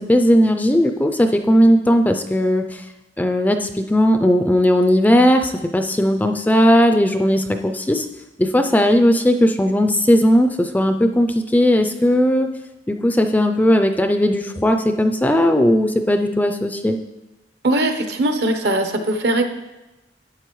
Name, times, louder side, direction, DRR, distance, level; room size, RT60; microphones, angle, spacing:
voice 1, 0.0-2.8 3.2-8.1 8.4-12.5 12.9-17.0, equal, 10° left, 6 dB, 0.3 m, -17 dB
voice 2, 17.6-19.5, right 1 dB, 65° right, 5 dB, 0.8 m, -20 dB
11.5 x 8.3 x 3.1 m, 1.0 s
head